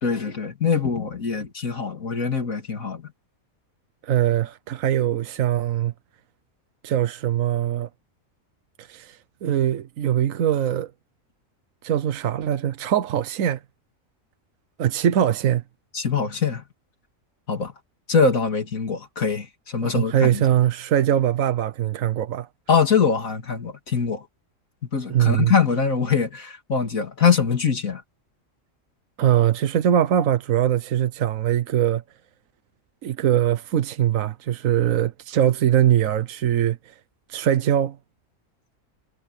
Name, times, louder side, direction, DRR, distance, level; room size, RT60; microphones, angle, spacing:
voice 1, 0.0-3.0 15.9-16.6 17.5-17.7 18.1-20.4 22.7-24.2 24.9-28.0, left 5 dB, 90° left, 3.1 m, -23 dB
voice 2, 4.0-5.9 6.8-7.9 8.8-10.9 11.8-13.6 14.8-15.6 19.8-22.5 25.1-25.5 29.2-32.0 33.0-37.0 37.3-38.0, right 10 dB, 80° right, 1.2 m, -22 dB
omnidirectional pair, 1.4 m